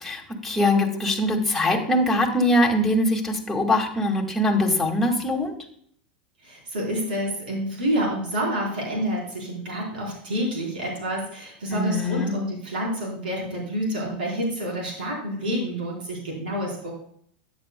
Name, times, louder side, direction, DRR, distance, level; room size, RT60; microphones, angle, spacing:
voice 1, 0.0-5.5 11.7-12.3, left 1 dB, 5° left, 0 dB, 2.1 m, -22 dB
voice 2, 6.4-16.9, equal, 85° right, -2 dB, 4.0 m, -28 dB
13.0 x 9.2 x 2.2 m, 0.62 s
hypercardioid pair, 100°, 5 cm